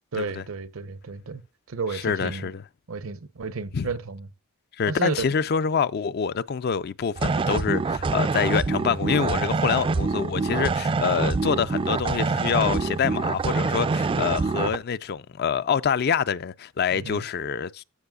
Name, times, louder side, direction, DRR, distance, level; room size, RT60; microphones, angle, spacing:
voice 1, 0.1-1.4 1.7-2.5 2.9-4.3 4.9-5.1 16.9-17.2, right 4 dB, 80° right, 0.7 m, -32 dB
voice 2, 2.0-2.6 3.7-3.9 4.8-17.8, left 6 dB, 50° left, 0.4 m, -26 dB
sound 1, 7.2-14.8, right 4 dB, 25° right, 0.3 m, -25 dB
15.0 x 5.4 x 2.3 m
head